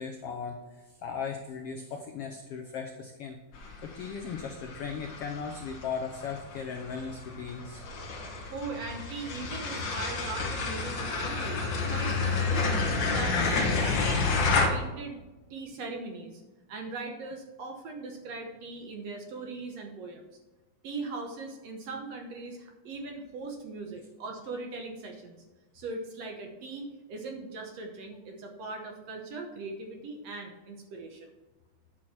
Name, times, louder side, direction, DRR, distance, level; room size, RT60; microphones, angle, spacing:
voice 1, 0.0-3.4 3.8-7.8, left 6 dB, 80° left, 4 dB, 1.3 m, -37 dB
sound 1, 3.5-14.7, left 4 dB, 55° left, 1.3 m, -30 dB
voice 2, 8.5-12.7 13.0-15.2 15.5-16.4 16.7-20.3 20.8-25.4 25.7-31.3, right 3 dB, 65° right, 3 dB, 1.9 m, -40 dB
10.5 x 6.2 x 4.3 m, 1.1 s
omnidirectional pair, 3.7 m